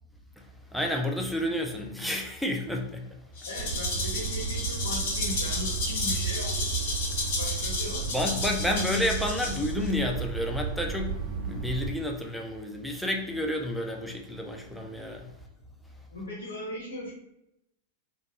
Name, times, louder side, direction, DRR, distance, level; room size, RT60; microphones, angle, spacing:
voice 1, 0.7-3.1 8.1-15.3, left 1 dB, ahead, 1 dB, 0.3 m, -30 dB
voice 2, 3.4-8.4 16.1-17.1, left 1 dB, 85° left, -4 dB, 1.1 m, -39 dB
Rattle (instrument), 3.4-9.9, left 3 dB, 60° left, 0.8 m, -32 dB
sound 1, 3.6-11.9, right 6 dB, 60° right, 0.5 m, -33 dB
2.2 x 2.2 x 2.8 m, 0.83 s
hypercardioid pair, 100°, 0 cm